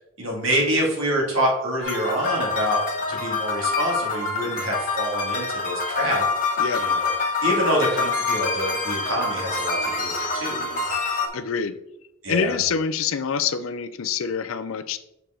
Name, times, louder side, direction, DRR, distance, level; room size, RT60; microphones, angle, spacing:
voice 1, 0.2-2.8 3.1-6.3 6.8-7.1 7.4-10.9 12.2-12.5, equal, 65° right, -3 dB, 2.4 m, -26 dB
sound 1, 1.8-11.3, left 4 dB, 40° left, 1.3 m, -26 dB
voice 2, 11.3-11.7 12.3-15.0, left 6 dB, 75° left, 12 dB, 0.5 m, -26 dB
6.7 x 4.7 x 3.7 m, 0.84 s
head